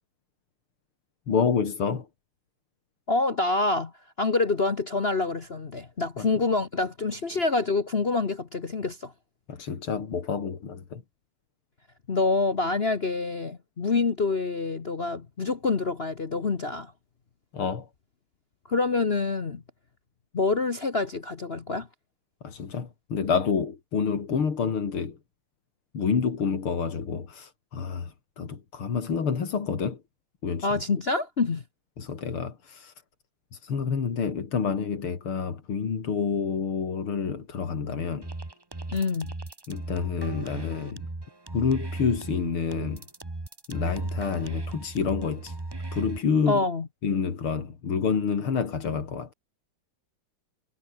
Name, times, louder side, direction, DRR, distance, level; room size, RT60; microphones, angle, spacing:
voice 1, 1.3-2.1 6.2-6.3 9.5-11.0 17.5-17.9 22.4-25.2 25.9-30.0 30.4-30.7 32.0-32.9 33.5-38.3 39.7-41.1 41.5-43.0 43.7-45.6 45.9-46.6 47.0-49.3, left 6 dB, 80° left, 3.6 m, -28 dB
voice 2, 3.1-3.9 4.2-9.1 12.1-16.9 18.7-19.6 20.3-21.9 30.6-31.6 38.9-39.3 46.5-46.9, left 3 dB, 35° left, 1.1 m, -26 dB
sound 1, 38.2-46.2, right 2 dB, 15° right, 1.1 m, -36 dB
omnidirectional pair, 2.3 m